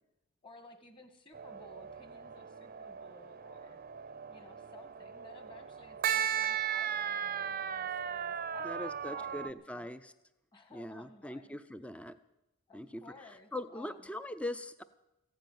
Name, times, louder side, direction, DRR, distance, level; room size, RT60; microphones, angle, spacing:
voice 1, 0.4-3.8 4.3-9.9 10.5-11.6 12.7-14.1, left 3 dB, 25° left, 7 dB, 1.6 m, -56 dB
sound 1, 1.3-9.5, right 8 dB, 40° right, 0.6 m, -37 dB
voice 2, 8.6-10.0 10.7-12.2 12.7-13.0 13.5-14.8, left 1 dB, 5° left, 12 dB, 0.5 m, -41 dB
15.0 x 9.2 x 9.2 m, 0.93 s
head